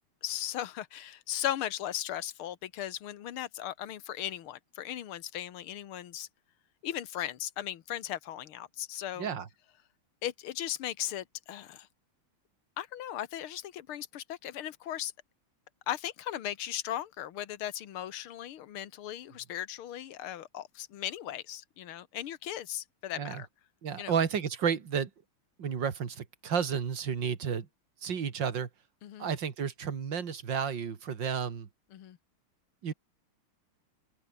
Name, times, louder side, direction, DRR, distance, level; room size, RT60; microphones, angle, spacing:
voice 1, 0.2-6.3 6.8-9.3 10.2-11.9 12.8-15.1 15.9-23.5 24.0-24.1 29.0-29.3 31.9-32.2, left 12 dB, 80° left, 2.1 m, -37 dB
voice 2, 9.2-9.5 23.2-23.4 23.8-25.1 25.6-27.7 28.0-28.7 29.2-31.7 32.8-32.9, right 7 dB, 60° right, 2.7 m, -32 dB
omnidirectional pair, 2.3 m